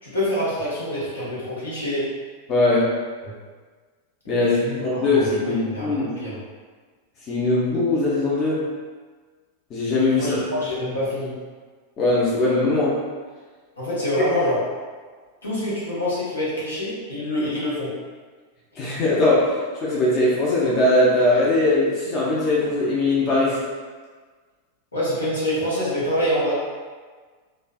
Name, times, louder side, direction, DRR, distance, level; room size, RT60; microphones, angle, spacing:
voice 1, 0.0-2.1 3.2-3.4 4.3-6.4 10.1-11.3 13.8-14.6 15.4-17.9 24.9-26.5, left 1 dB, 75° left, -9 dB, 1.1 m, -26 dB
voice 2, 2.5-2.9 4.3-4.5 4.8-6.2 7.2-8.6 9.7-10.4 12.0-13.0 18.8-23.6, left 2 dB, 30° left, -7 dB, 0.7 m, -20 dB
3.1 x 2.5 x 2.3 m, 1.5 s
figure-of-eight pair, 90°, 0 cm